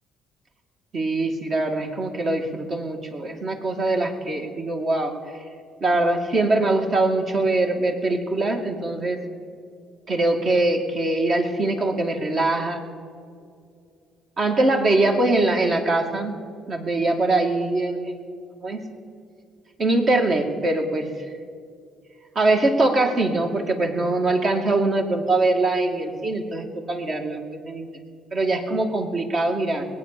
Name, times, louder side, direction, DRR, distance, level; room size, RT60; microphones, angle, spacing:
voice 1, 0.9-5.2 5.8-9.2 10.1-12.8 14.4-16.3 16.7-18.1 18.6-18.8 19.8-21.1 22.4-27.9 28.3-29.8, right 2 dB, 50° right, 3 dB, 2.3 m, -22 dB
20.0 x 8.7 x 6.9 m, 2.3 s
supercardioid pair, 70°, 0 cm